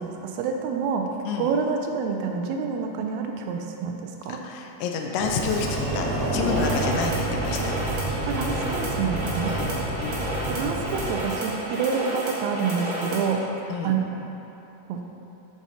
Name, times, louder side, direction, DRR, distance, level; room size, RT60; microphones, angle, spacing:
voice 1, 0.0-1.1 1.4-4.4 8.2-9.6 10.5-13.4 13.8-14.2 14.9-15.0, right 5 dB, 85° right, 3 dB, 1.6 m, -27 dB
voice 2, 1.3-1.6 4.3-7.6 9.5-10.2 13.7-14.0, left 5 dB, 80° left, 2 dB, 2.2 m, -29 dB
Sliding door, 5.2-11.1, right 1 dB, 35° right, 1.9 m, -29 dB
sound 1, 6.5-13.3, right 1 dB, 55° right, 0.8 m, -31 dB
7.1 x 6.3 x 4.2 m, 3.0 s
omnidirectional pair, 3.8 m